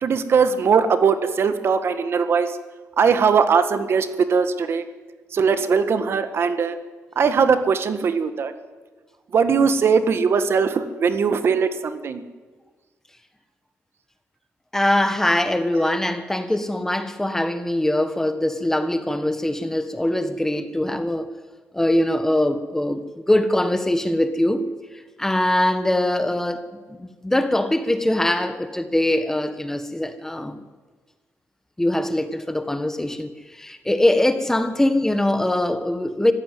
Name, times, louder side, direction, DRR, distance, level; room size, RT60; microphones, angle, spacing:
voice 1, 0.0-2.6 3.0-4.8 5.3-6.8 7.2-8.5 9.3-12.2, right 6 dB, 50° right, 1.8 m, -20 dB
voice 2, 14.7-21.3 21.7-23.0 23.3-24.6 25.2-26.6 27.0-30.6 31.8-33.3 33.6-36.3, left 1 dB, 10° left, 1.5 m, -22 dB
25.0 x 15.0 x 9.5 m
cardioid pair, 135°, 5 cm